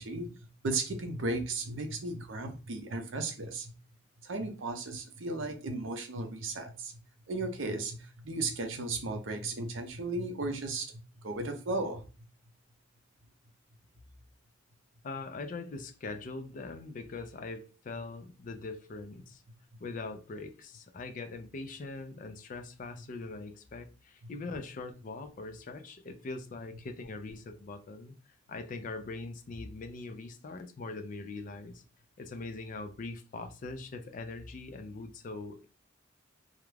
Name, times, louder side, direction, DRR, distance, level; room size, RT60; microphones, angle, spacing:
voice 1, 0.0-3.8 4.2-6.9 7.3-12.0 24.2-24.3, right 2 dB, 65° right, 0.5 m, -35 dB
voice 2, 15.0-19.4 19.8-28.2 28.5-31.8 32.2-35.7, left 3 dB, 40° left, 0.3 m, -42 dB
2.4 x 2.1 x 3.1 m
head